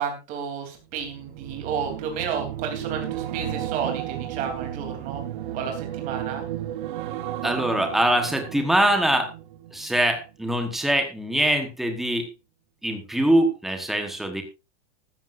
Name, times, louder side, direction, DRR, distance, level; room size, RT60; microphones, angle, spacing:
voice 1, 0.0-5.2 5.5-6.4, right 7 dB, 25° right, 3 dB, 3.3 m, -31 dB
sound 1, 0.9-10.3 10.7-11.0, right 12 dB, 45° right, 1.0 m, -34 dB
voice 2, 7.4-9.3 9.7-12.3 12.8-14.4, right 1 dB, ahead, 4 dB, 1.2 m, -23 dB
15.5 x 13.5 x 2.6 m, 0.28 s
supercardioid pair, 175°, 34 cm